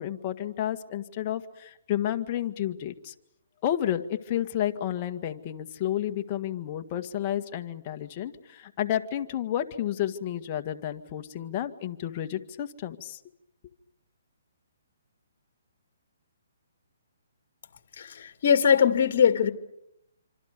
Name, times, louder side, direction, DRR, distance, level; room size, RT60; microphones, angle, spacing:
voice 1, 0.0-3.1 3.6-13.2, left 11 dB, 30° left, 7 dB, 1.8 m, -31 dB
voice 2, 18.0-19.5, left 7 dB, 50° left, 8 dB, 2.5 m, -21 dB
27.0 x 26.0 x 6.9 m, 0.79 s
hypercardioid pair, 155°, 0 cm